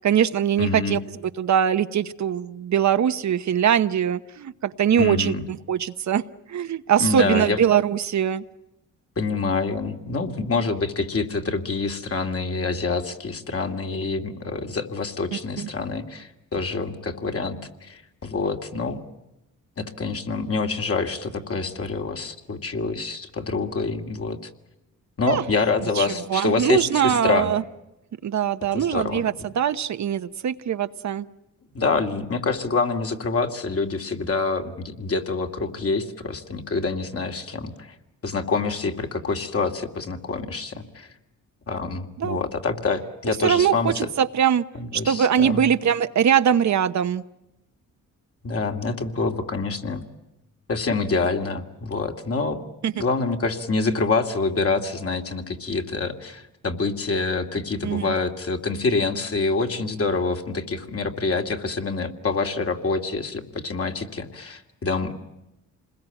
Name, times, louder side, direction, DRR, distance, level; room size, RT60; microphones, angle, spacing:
voice 1, 0.0-1.0 1.4-5.3 5.7-6.2 6.5-8.4 15.6-15.7 25.3-25.4 26.0-27.6 28.2-31.3 42.2-42.4 43.3-44.6 44.9-47.2 52.8-52.9 57.8-58.1, right 9 dB, 60° right, 11 dB, 1.0 m, -22 dB
voice 2, 0.6-1.0 5.0-5.4 7.0-7.6 9.2-19.0 19.8-24.4 25.2-27.5 28.7-29.2 31.7-38.0 38.2-41.1 41.7-44.1 44.7-45.6 48.4-50.0 50.7-52.6 53.0-65.1, left 4 dB, 45° left, 4 dB, 2.6 m, -26 dB
27.5 x 21.0 x 9.1 m, 0.95 s
cardioid pair, 90°, 32 cm